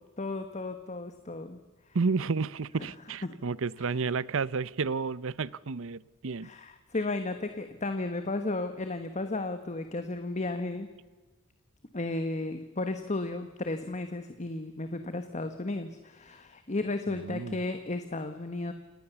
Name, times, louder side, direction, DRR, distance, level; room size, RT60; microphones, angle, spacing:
voice 1, 0.0-1.6 3.2-3.4 6.4-10.9 11.9-18.7, left 2 dB, 35° left, 8 dB, 1.3 m, -34 dB
voice 2, 1.9-6.5 17.1-17.6, right 4 dB, 65° right, 20 dB, 0.7 m, -31 dB
28.5 x 18.5 x 7.1 m, 1.2 s
head